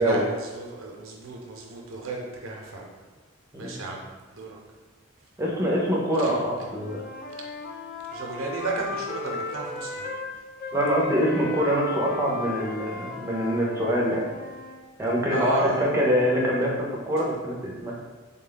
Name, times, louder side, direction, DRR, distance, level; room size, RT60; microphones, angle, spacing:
voice 1, 0.0-2.9 3.6-4.0 4.3-4.6 6.2-6.3 8.1-10.1 15.3-16.0, right 2 dB, 85° right, -1 dB, 0.7 m, -33 dB
voice 2, 5.4-7.0 10.7-14.3 15.0-17.9, equal, 15° right, -3 dB, 0.6 m, -24 dB
Wind instrument woodwind instrument, 6.7-10.3 10.6-14.8, left 3 dB, 50° left, 0.4 m, -35 dB
3.6 x 2.2 x 3.8 m, 1.3 s
head